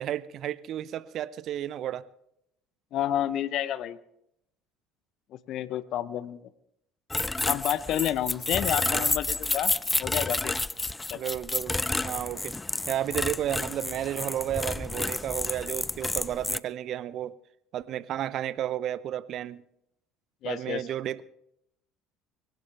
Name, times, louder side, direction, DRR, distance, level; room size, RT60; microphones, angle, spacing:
voice 1, 0.0-2.1 8.9-9.1 11.1-12.6 12.9-17.4 17.7-19.6 20.4-21.2, right 11 dB, 50° right, 0.7 m, -32 dB
voice 2, 2.9-4.0 5.5-6.5 7.4-9.7 10.0-10.5 11.1-11.2 20.4-20.8, left 11 dB, 55° left, 0.9 m, -30 dB
sound 1, 7.1-16.6, left 2 dB, 15° left, 0.5 m, -30 dB
21.5 x 18.0 x 3.4 m
figure-of-eight pair, 60°, 0 cm